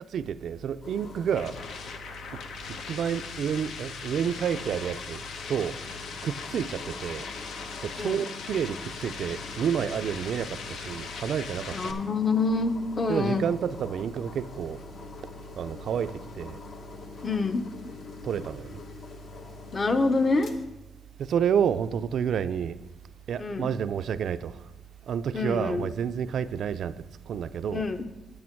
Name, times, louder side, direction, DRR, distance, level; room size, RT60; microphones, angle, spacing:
voice 1, 0.0-1.6 2.3-2.4 2.7-5.2 5.5-5.8 6.2-7.3 7.8-12.0 13.1-14.8 15.6-16.6 18.2-18.8 21.2-22.8 23.3-24.6 25.1-27.8, right 8 dB, 70° right, 0.4 m, -29 dB
sound 1, 0.8-20.7, left 5 dB, 60° left, 1.0 m, -45 dB
sound 2, 0.9-11.9, left 5 dB, 80° left, 0.7 m, -40 dB
voice 2, 11.7-13.4 17.2-17.6 19.7-20.5 23.4-23.7 25.3-25.9 27.7-28.0, left 3 dB, 35° left, 0.7 m, -26 dB
8.8 x 8.6 x 4.5 m
cardioid pair, 115°, 0 cm